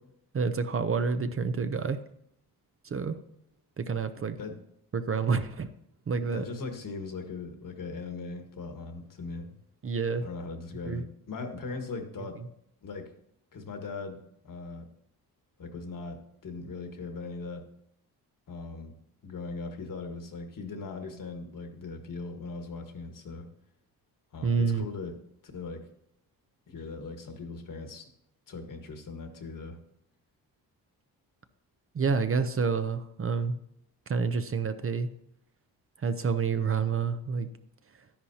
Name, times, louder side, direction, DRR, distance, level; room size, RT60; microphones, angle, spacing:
voice 1, 0.3-2.0 2.8-3.2 3.8-4.4 4.9-5.7 6.1-6.4 9.8-10.3 10.9-11.0 24.4-24.9 31.9-33.6 34.1-35.1 36.0-37.5, right 5 dB, 35° right, 9 dB, 0.6 m, -28 dB
voice 2, 6.2-9.5 10.2-12.4 12.8-13.1 13.5-14.9 15.6-17.6 18.5-18.9 19.2-23.5 24.3-25.2 25.5-25.8 26.7-28.1 28.5-29.8, left 3 dB, 55° left, 5 dB, 1.6 m, -39 dB
11.5 x 10.5 x 2.8 m, 0.73 s
cardioid pair, 85°, 38 cm